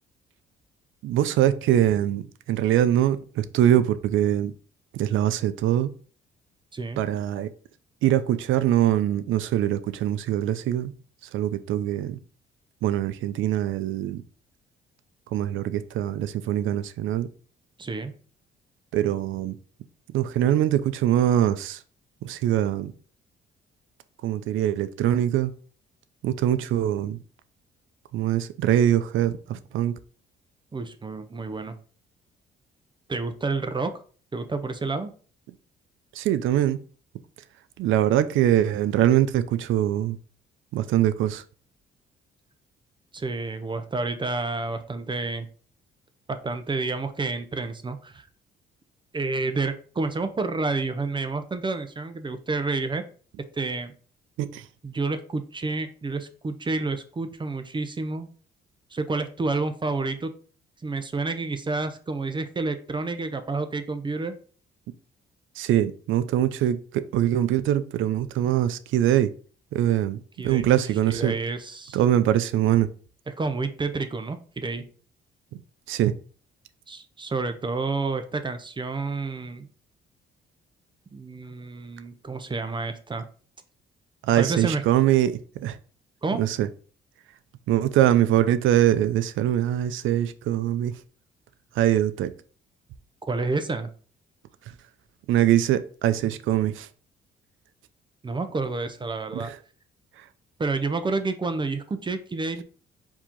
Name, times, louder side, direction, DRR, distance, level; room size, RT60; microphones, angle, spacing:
voice 1, 1.0-4.5 4.9-5.9 7.0-7.5 8.0-10.9 11.3-12.2 12.8-14.2 15.3-17.3 18.9-19.6 20.1-21.8 22.2-22.9 24.2-25.5 26.2-27.2 28.1-29.9 36.1-36.8 37.8-40.2 40.7-41.4 54.4-54.6 65.6-69.3 69.7-71.4 71.9-72.9 75.9-76.1 84.2-85.8 86.4-86.7 87.7-91.0 91.8-92.3 95.3-96.9 99.3-99.6, right 11 dB, 80° right, 13 dB, 0.5 m, -23 dB
voice 2, 6.7-7.0 17.8-18.1 30.7-31.8 33.1-33.9 34.3-35.1 43.1-45.5 46.3-48.2 49.1-53.0 53.5-53.9 54.8-58.3 58.9-60.3 60.8-64.4 70.4-70.8 71.1-72.0 73.3-74.8 76.9-79.7 81.1-83.2 84.4-84.8 86.2-86.4 93.3-93.9 98.2-99.5 100.6-102.6, right 3 dB, 25° right, 9 dB, 0.6 m, -29 dB
4.7 x 2.8 x 3.7 m, 0.41 s
cardioid pair, 90°, 20 cm